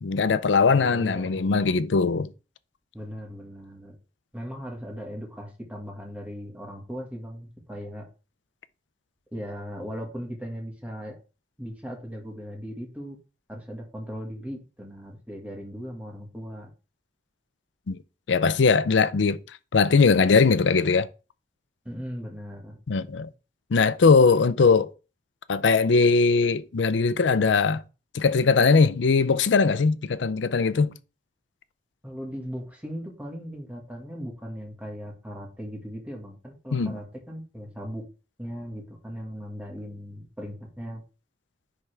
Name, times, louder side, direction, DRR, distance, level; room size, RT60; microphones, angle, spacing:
voice 1, 0.0-2.3 17.9-18.0 18.3-19.4 19.7-21.1 22.9-23.3 23.7-24.9 25.5-27.8 28.1-30.9 36.7-36.9, left 4 dB, 85° left, 0.5 m, -20 dB
voice 2, 0.7-1.4 2.9-4.0 4.3-8.1 9.3-11.1 11.6-13.2 13.5-16.7 21.9-22.8 32.0-38.0 38.4-41.0, equal, 10° right, 1.6 m, -38 dB
10.5 x 3.5 x 3.4 m
head